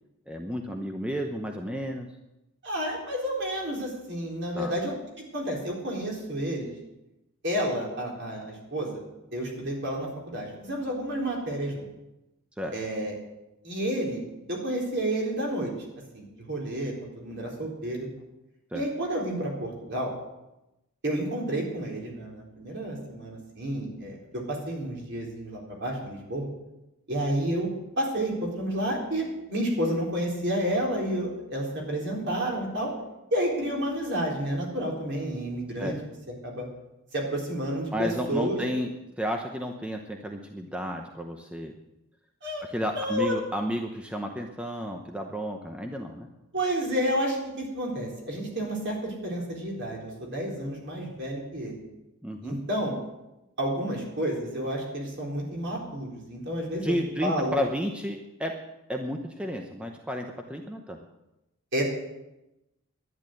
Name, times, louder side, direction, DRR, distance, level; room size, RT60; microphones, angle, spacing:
voice 1, 0.3-2.1 4.5-4.8 12.6-12.7 18.7-18.8 35.8-35.9 37.9-38.9 39.2-41.7 42.7-46.3 52.2-52.6 56.8-58.5 58.9-61.0, equal, 5° right, 3 dB, 0.8 m, -32 dB
voice 2, 2.6-6.7 7.4-9.0 9.3-11.9 12.7-13.1 13.6-14.2 14.5-15.7 16.1-18.1 18.7-20.1 21.0-26.5 27.1-27.7 28.0-32.9 33.3-35.9 36.4-36.7 37.1-38.6 42.4-42.6 42.9-43.3 46.5-51.8 52.4-52.9 53.6-57.0 57.2-57.5 61.7-61.8, right 1 dB, 50° right, -2 dB, 4.1 m, -30 dB
11.0 x 10.5 x 7.8 m, 0.94 s
head